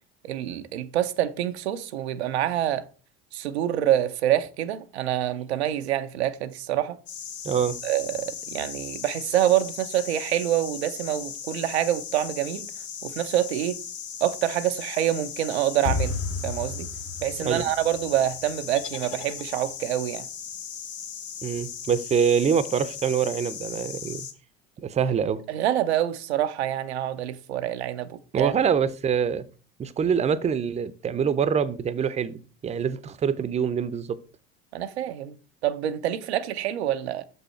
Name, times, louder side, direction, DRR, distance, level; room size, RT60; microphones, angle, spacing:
voice 1, 0.2-2.8 3.3-7.0 7.8-12.7 13.0-13.8 14.2-16.2 16.4-16.9 17.2-20.3 25.5-28.5 34.7-35.4 35.6-37.2, right 12 dB, 90° right, 0.6 m, -26 dB
sound 1, 7.1-24.3, left 7 dB, 90° left, 0.9 m, -38 dB
voice 2, 7.4-7.8 17.4-17.6 21.4-24.2 24.8-25.4 28.3-29.4 29.8-34.2, right 7 dB, 20° right, 0.5 m, -25 dB
sound 2, 15.8-18.9, left 3 dB, 45° left, 0.8 m, -32 dB
sound 3, 18.7-20.0, left 9 dB, 70° left, 1.1 m, -43 dB
6.2 x 5.4 x 4.3 m
hypercardioid pair, 80°, 32 cm